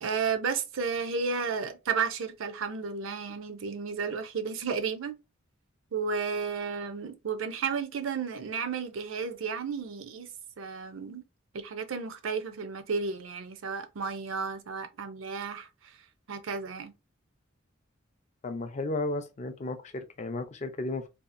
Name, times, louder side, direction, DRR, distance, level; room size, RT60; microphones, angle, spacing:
voice 1, 0.0-5.1 5.9-10.3 10.6-11.2 11.5-15.9 16.3-16.9, right 5 dB, 80° right, 0.5 m, -33 dB
voice 2, 18.4-21.1, left 2 dB, 35° left, 0.4 m, -34 dB
2.7 x 2.3 x 2.5 m
head